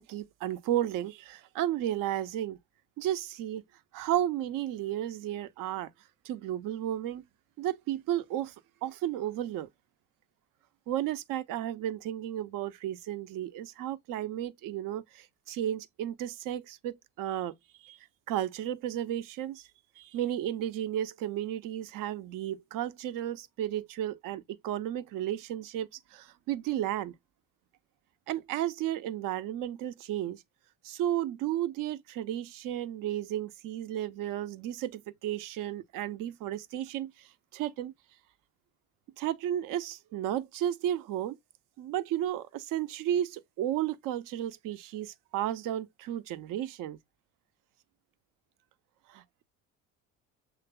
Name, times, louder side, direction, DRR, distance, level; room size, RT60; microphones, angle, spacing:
voice 1, 0.0-2.6 3.0-3.6 3.9-5.9 6.2-7.2 7.6-8.5 8.8-9.7 10.9-17.5 17.8-18.0 18.3-19.7 20.0-27.1 28.3-30.4 30.8-37.9 39.2-41.4 41.8-47.0 49.1-49.4, right 12 dB, 70° right, 0.7 m, -33 dB
6.8 x 3.2 x 2.2 m
supercardioid pair, 80°, 34 cm